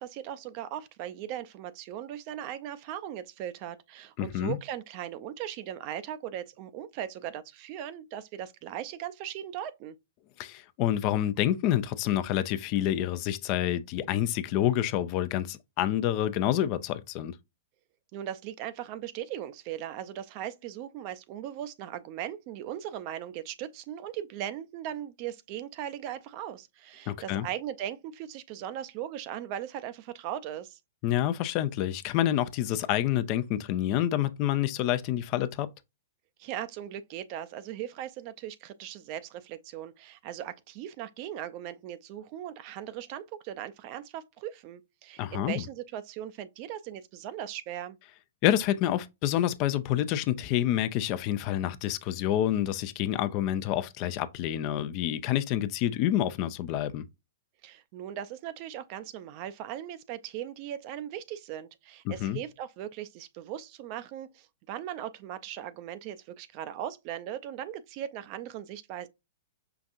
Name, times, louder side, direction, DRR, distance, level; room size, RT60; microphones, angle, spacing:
voice 1, 0.0-10.0 18.1-30.8 36.4-48.0 57.6-69.1, right 11 dB, 40° right, 0.5 m, -38 dB
voice 2, 4.2-4.6 10.4-17.3 27.1-27.5 31.0-35.7 45.2-45.6 48.4-57.0 62.1-62.4, left 12 dB, 40° left, 0.4 m, -28 dB
5.7 x 2.5 x 2.4 m
figure-of-eight pair, 110°, 0 cm